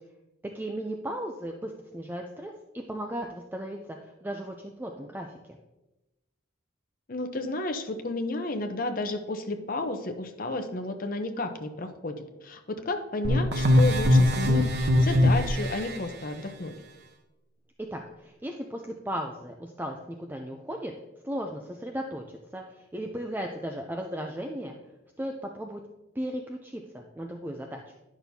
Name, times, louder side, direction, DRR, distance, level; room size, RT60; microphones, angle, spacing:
voice 1, 0.5-5.3 17.9-20.9 21.2-24.8 25.2-25.8 26.1-27.9, equal, 10° right, 2 dB, 0.4 m, -36 dB
voice 2, 7.1-16.7, left 2 dB, 45° left, 6 dB, 0.7 m, -32 dB
sound 1, 13.2-16.0, left 1 dB, 50° right, 0.8 m, -21 dB
10.5 x 6.0 x 2.7 m, 1.0 s
head